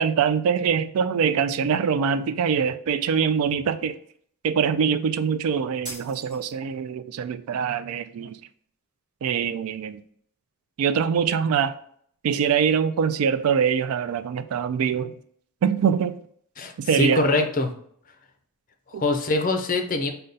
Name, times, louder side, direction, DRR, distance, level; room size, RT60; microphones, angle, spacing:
voice 1, 0.0-4.0 4.4-8.4 9.2-10.0 10.8-11.8 12.2-15.1 15.6-16.1 16.8-17.3 18.9-19.0, right 7 dB, 70° right, 0.3 m, -23 dB
sound 1, 5.8-6.9, right 1 dB, 35° right, 1.8 m, -40 dB
voice 2, 16.6-17.7 18.9-20.1, left 2 dB, 40° left, 0.5 m, -23 dB
5.3 x 2.3 x 3.8 m
head